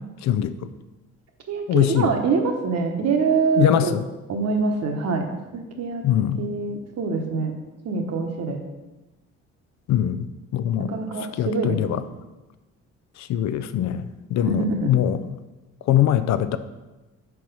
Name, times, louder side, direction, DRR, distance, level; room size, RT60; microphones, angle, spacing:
voice 1, 0.2-0.6 1.7-2.1 3.6-4.0 6.0-6.5 9.9-10.3 10.5-10.9 11.4-12.0 13.2-15.2 15.9-16.6, left 11 dB, 65° left, 12 dB, 0.4 m, -22 dB
voice 2, 1.5-3.9 4.3-5.3 5.5-6.0 6.4-7.5 7.8-8.6 10.9-12.0 14.5-14.9, right 4 dB, 55° right, 4 dB, 1.0 m, -24 dB
4.7 x 4.6 x 5.3 m, 1.1 s
cardioid pair, 90°, 30 cm